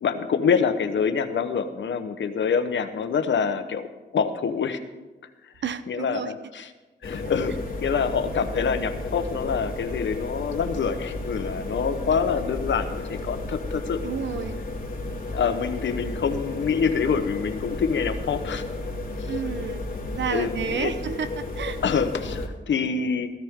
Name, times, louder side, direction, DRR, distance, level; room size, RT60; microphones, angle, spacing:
voice 1, 0.0-3.9 4.1-4.8 5.9-6.7 7.0-7.5 7.8-14.0 15.3-18.6 20.3-20.9 21.8-23.3, left 6 dB, 85° left, 9 dB, 0.9 m, -26 dB
voice 2, 5.6-6.3 14.0-14.6 19.2-19.8 20.1-21.8, right 7 dB, 75° right, 12 dB, 0.8 m, -31 dB
sound 1, 7.0-22.5, left 2 dB, 50° left, 2.4 m, -33 dB
15.0 x 13.0 x 3.7 m, 1.2 s
cardioid pair, 65°, 19 cm